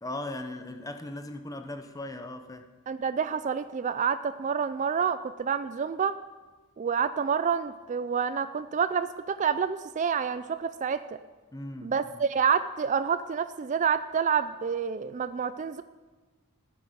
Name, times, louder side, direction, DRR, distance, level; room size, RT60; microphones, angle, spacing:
voice 1, 0.0-2.7 11.5-12.2, left 1 dB, 15° left, 0.8 m, -38 dB
voice 2, 2.9-6.2 6.8-11.0 11.8-15.8, right 6 dB, 35° right, 0.3 m, -28 dB
15.0 x 8.5 x 5.1 m
head